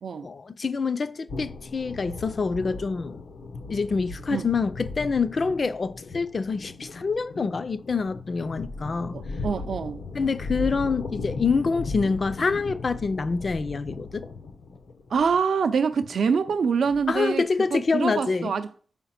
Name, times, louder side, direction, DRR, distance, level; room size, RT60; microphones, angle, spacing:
voice 1, 0.2-3.2 3.7-9.2 10.2-14.2 17.1-18.5, left 4 dB, 40° left, 0.4 m, -26 dB
sound 1, 1.3-17.5, left 3 dB, 90° left, 0.8 m, -37 dB
voice 2, 9.1-10.0 15.1-17.5 17.7-18.7, right 6 dB, 70° right, 0.5 m, -25 dB
5.6 x 4.9 x 5.7 m
wide cardioid pair, 160°, 0 cm